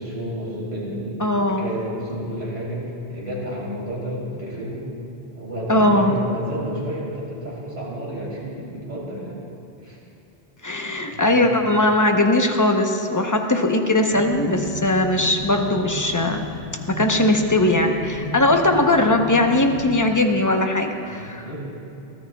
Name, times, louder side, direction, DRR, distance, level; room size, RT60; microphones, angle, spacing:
voice 1, 0.0-4.9 5.3-9.4 9.8-10.0 11.1-11.5 21.1-21.6, equal, 45° right, -7 dB, 3.6 m, -31 dB
voice 2, 1.2-1.7 5.7-6.2 10.6-16.5 16.9-21.5, left 1 dB, 20° left, 3 dB, 0.8 m, -19 dB
sound 1, 14.1-20.1, left 2 dB, 85° left, 2.2 m, -33 dB
22.5 x 14.5 x 2.3 m, 2.8 s
omnidirectional pair, 1.1 m